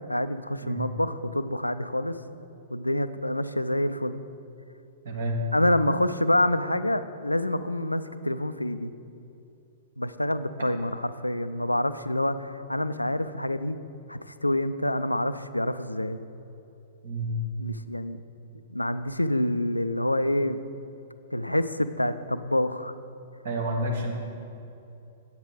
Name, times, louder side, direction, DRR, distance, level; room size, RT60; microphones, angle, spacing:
voice 1, 0.1-2.2 2.7-4.2 5.5-8.9 10.0-13.8 14.1-16.2 17.6-18.2 18.7-20.6 21.3-22.9, left 1 dB, 85° left, 12 dB, 0.4 m, -27 dB
voice 2, 5.0-5.4 10.6-10.7 17.0-17.4 23.4-24.1, right 1 dB, 60° right, 0 dB, 1.6 m, -29 dB
8.8 x 8.1 x 4.8 m, 2.8 s
figure-of-eight pair, 105°, 0 cm